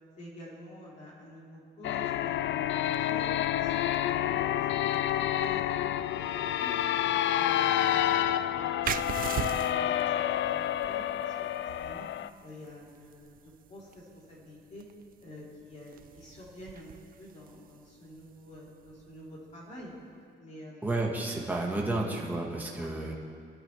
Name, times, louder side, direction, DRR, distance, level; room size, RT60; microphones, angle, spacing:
voice 1, 0.2-3.3 3.5-6.7 7.4-8.7 9.0-11.3 11.8-12.1 12.4-14.9 15.2-16.9 17.2-19.9 20.4-21.0 22.7-23.0, equal, 40° left, -6 dB, 4.2 m, -48 dB
sound 1, 1.8-12.3, left 11 dB, 80° left, 0.4 m, -29 dB
sound 2, 8.8-20.1, right 9 dB, 50° right, 0.5 m, -42 dB
voice 2, 20.8-23.1, right 2 dB, 10° right, -2 dB, 1.8 m, -31 dB
21.5 x 13.0 x 3.6 m, 2.3 s
cardioid pair, 155°, 19 cm